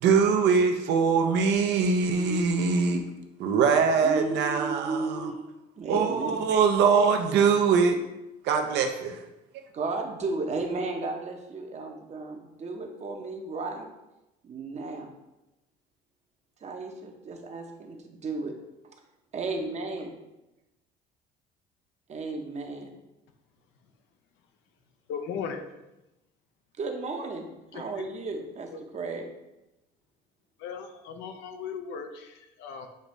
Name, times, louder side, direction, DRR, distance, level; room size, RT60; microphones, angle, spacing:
voice 1, 0.0-3.0 3.4-5.3 5.9-8.0 8.4-9.2, right 5 dB, 65° right, 4 dB, 0.6 m, -23 dB
voice 2, 2.1-2.4 4.0-6.5 9.7-13.9 14.4-15.1 16.6-18.5 19.3-20.2 22.1-22.9 26.8-27.5 27.7-29.2, right 3 dB, 35° right, 4 dB, 0.8 m, -34 dB
voice 3, 25.1-25.7 27.7-28.1 28.7-29.2 30.6-32.9, left 6 dB, 80° left, 7 dB, 0.6 m, -38 dB
6.5 x 2.6 x 3.1 m, 0.95 s
cardioid pair, 100°, 19 cm